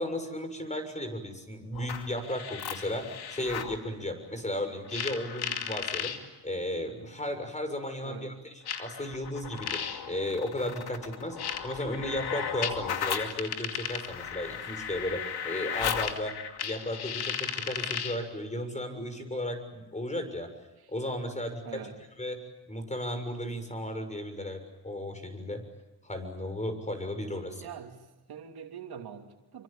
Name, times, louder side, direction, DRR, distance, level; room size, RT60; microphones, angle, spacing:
voice 1, 0.0-6.2 6.4-11.4 11.6-20.5 20.9-21.8 22.2-22.4 22.7-25.6 26.0-27.7, left 1 dB, 20° left, 8 dB, 6.8 m, -35 dB
sound 1, 1.7-3.8 4.9-6.2 7.3-7.4 8.7-18.2, left 8 dB, 75° left, 2.5 m, -35 dB
voice 2, 8.0-8.4 21.6-22.0 27.6-29.6, right 8 dB, 70° right, 4 dB, 2.9 m, -44 dB
27.5 x 24.5 x 8.8 m, 1.0 s
cardioid pair, 75°, 39 cm